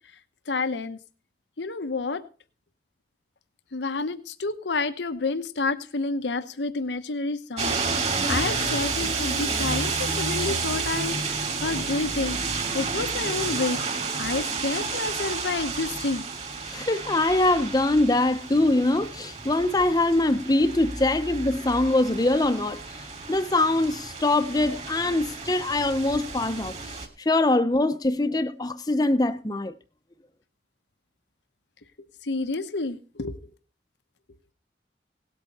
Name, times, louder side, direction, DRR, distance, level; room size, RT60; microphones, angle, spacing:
voice 1, 0.5-1.0 1.6-2.2 3.7-12.4 12.7-16.2 32.2-33.4, left 3 dB, 85° left, 0.9 m, -29 dB
sound 1, 7.6-27.1, right 4 dB, 35° right, 2.5 m, -31 dB
voice 2, 16.7-29.7, left 2 dB, 20° left, 0.6 m, -23 dB
18.0 x 8.3 x 4.1 m
head